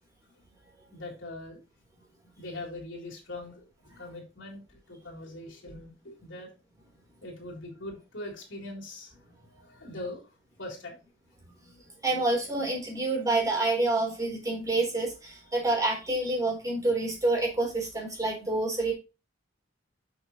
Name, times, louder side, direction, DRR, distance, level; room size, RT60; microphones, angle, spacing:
voice 1, 0.9-1.6 2.4-3.7 4.0-6.5 7.2-9.1 9.7-10.3 10.6-11.0 11.8-11.9, left 2 dB, 65° left, -2 dB, 3.6 m, -41 dB
voice 2, 12.0-18.9, right 2 dB, 20° right, -1 dB, 3.7 m, -28 dB
8.4 x 6.3 x 3.0 m, 0.30 s
head